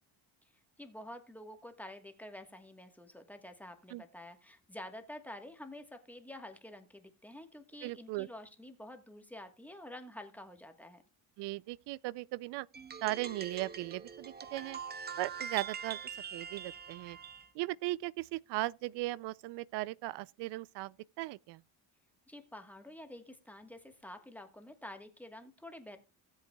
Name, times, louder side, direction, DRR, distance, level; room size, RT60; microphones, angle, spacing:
voice 1, 0.8-11.0 22.3-26.0, left 1 dB, 5° left, 1.3 m, -49 dB
voice 2, 7.8-8.3 11.4-12.7 13.0-14.8 15.2-16.0 16.3-17.2 17.5-21.6, right 18 dB, 75° right, 0.5 m, -37 dB
sound 1, 12.7-17.5, right 7 dB, 25° right, 0.7 m, -43 dB
16.5 x 8.0 x 2.3 m
cardioid pair, 125°, 42 cm